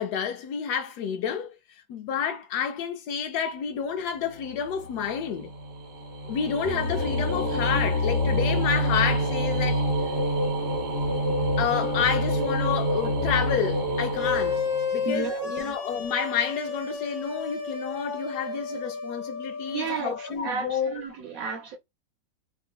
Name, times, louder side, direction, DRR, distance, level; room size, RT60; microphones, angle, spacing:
voice 1, 0.0-1.5 1.9-5.5 6.3-9.8 11.6-14.6 14.9-21.0, left 7 dB, 75° left, 1.0 m, -29 dB
sound 1, 4.3-15.3, equal, 20° right, 1.0 m, -27 dB
sound 2, 14.2-20.3, left 5 dB, 50° left, 1.2 m, -32 dB
voice 2, 15.1-15.5 19.7-21.8, right 5 dB, 70° right, 0.9 m, -33 dB
3.7 x 2.7 x 2.3 m
omnidirectional pair, 1.9 m